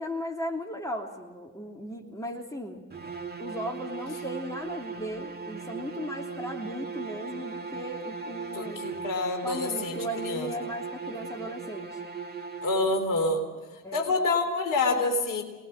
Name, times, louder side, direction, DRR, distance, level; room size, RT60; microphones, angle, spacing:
voice 1, 0.0-2.8 3.4-8.8 9.4-12.0 13.8-14.2, equal, 10° left, 2 dB, 3.1 m, -36 dB
sound 1, 2.9-13.1, right 5 dB, 25° right, 2.4 m, -38 dB
voice 2, 8.5-10.5 12.6-13.4 13.9-15.4, left 3 dB, 50° left, 5 dB, 3.7 m, -27 dB
27.5 x 20.0 x 6.4 m, 1.2 s
figure-of-eight pair, 45°, 40 cm